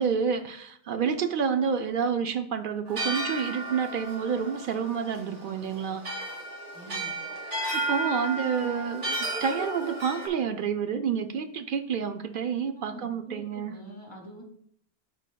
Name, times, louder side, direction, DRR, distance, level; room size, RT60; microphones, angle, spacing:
voice 1, 0.0-6.2 7.7-13.7, right 6 dB, 60° right, 8 dB, 0.6 m, -29 dB
sound 1, 2.9-10.3, right 2 dB, 80° right, 1.9 m, -33 dB
voice 2, 6.7-7.2 12.7-14.4, right 1 dB, 25° left, -1 dB, 2.1 m, -45 dB
12.5 x 4.6 x 2.2 m, 0.69 s
omnidirectional pair, 1.2 m